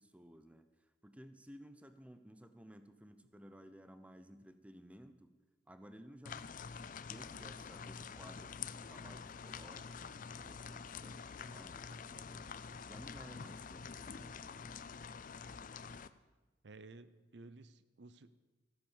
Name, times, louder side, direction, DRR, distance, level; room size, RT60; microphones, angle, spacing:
voice 1, 0.0-5.3 5.7-12.5 12.8-14.8, equal, 5° right, 10 dB, 0.7 m, -57 dB
sound 1, 6.3-16.1, left 6 dB, 45° left, 0.5 m, -47 dB
voice 2, 16.6-18.4, right 3 dB, 65° right, 14 dB, 0.7 m, -55 dB
14.5 x 9.5 x 7.2 m, 1.2 s
head